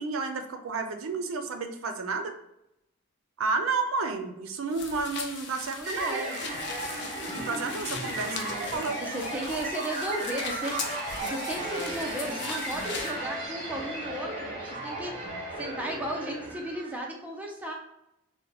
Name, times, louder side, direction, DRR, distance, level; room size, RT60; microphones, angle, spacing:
voice 1, 0.0-2.3 3.4-6.2 7.3-8.4 8.7-9.0, right 4 dB, 85° right, 7 dB, 0.4 m, -31 dB
sound 1, 4.7-13.2, left 5 dB, 55° left, 0.5 m, -40 dB
voice 2, 5.8-6.4 8.2-10.8 11.2-15.3 15.6-17.7, right 1 dB, 5° right, -1 dB, 0.5 m, -35 dB
sound 2, 5.9-17.0, right 1 dB, 40° right, 1.1 m, -35 dB
2.8 x 2.1 x 3.8 m, 0.83 s
head